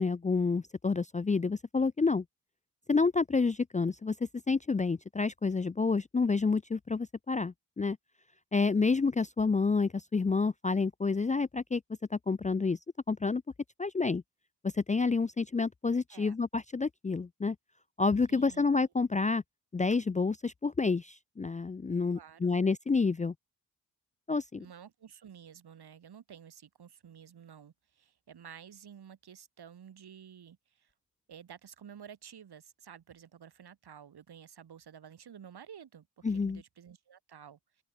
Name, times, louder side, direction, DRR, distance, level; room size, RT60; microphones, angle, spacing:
voice 1, 0.0-2.2 2.9-4.1 4.5-8.0 8.5-11.8 12.1-12.8 13.1-13.4 13.8-14.2 14.6-17.6 18.0-19.4 19.7-23.3 24.3-24.6 36.2-36.6, left 4 dB, 20° left, 0.5 m, -29 dB
voice 2, 18.3-18.7 22.1-22.6 24.6-30.9 31.3-37.8, right 8 dB, 65° right, 8.0 m, -52 dB
open air
supercardioid pair, 45°, 41 cm